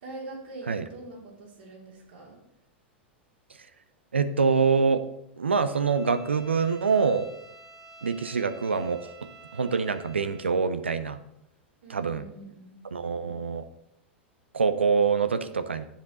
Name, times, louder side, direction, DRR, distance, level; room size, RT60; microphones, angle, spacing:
voice 1, 0.0-2.4 11.8-12.7, right 2 dB, 65° right, -3 dB, 3.1 m, -43 dB
voice 2, 4.1-5.0 5.4-7.3 8.0-9.0 9.5-11.2 11.9-12.2 12.9-13.6 14.5-15.8, right 5 dB, 80° right, 11 dB, 0.5 m, -25 dB
Bowed string instrument, 5.7-10.6, right 2 dB, 10° right, 1.4 m, -50 dB
7.4 x 7.3 x 4.0 m, 0.81 s
figure-of-eight pair, 95°, 6 cm